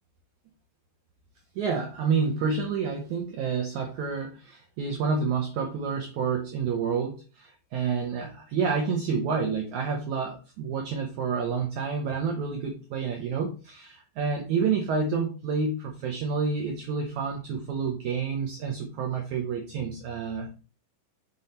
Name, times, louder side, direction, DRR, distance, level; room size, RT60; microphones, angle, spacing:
voice 1, 1.6-20.6, right 5 dB, 70° right, 3 dB, 2.0 m, -29 dB
6.3 x 5.2 x 4.2 m, 0.35 s
omnidirectional pair, 4.2 m